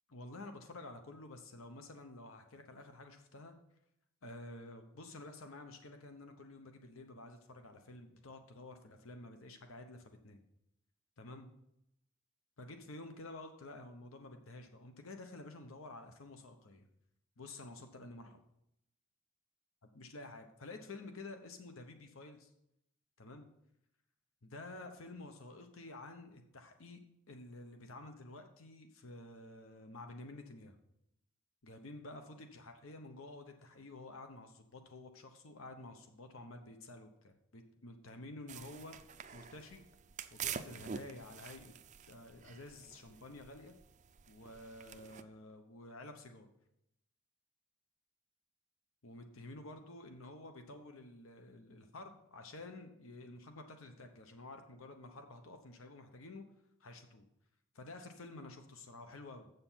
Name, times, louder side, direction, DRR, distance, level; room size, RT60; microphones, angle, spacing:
voice 1, 0.1-3.5 4.2-10.4 11.2-11.5 12.6-16.9 17.4-18.4 19.9-22.5 23.2-23.5 24.4-27.0 27.3-30.8 31.6-39.0 39.3-39.8 40.3-41.7 42.1-43.7 44.3-46.5 49.0-56.5 56.8-57.3 57.7-59.5, left 2 dB, 75° left, 7 dB, 0.9 m, -51 dB
sound 1, 38.5-45.2, right 7 dB, 35° right, 0.4 m, -47 dB
8.0 x 6.8 x 5.6 m, 0.80 s
head